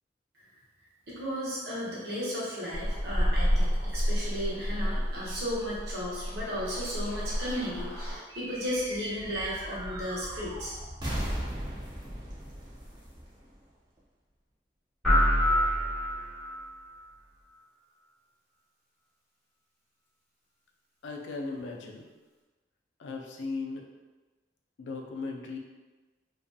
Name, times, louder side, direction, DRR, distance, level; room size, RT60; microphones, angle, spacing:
voice 1, 1.1-10.7, equal, 65° right, -7 dB, 0.8 m, -34 dB
sound 1, 2.7-8.2, equal, 40° right, 1.1 m, -30 dB
sound 2, 8.3-14.0, equal, 25° right, 0.5 m, -38 dB
sound 3, 15.0-16.6, equal, ahead, 1.1 m, -25 dB
voice 2, 21.0-22.0 23.0-23.8 24.8-25.6, left 3 dB, 85° left, 1 dB, 0.4 m, -37 dB
2.6 x 2.3 x 2.2 m, 1.2 s
head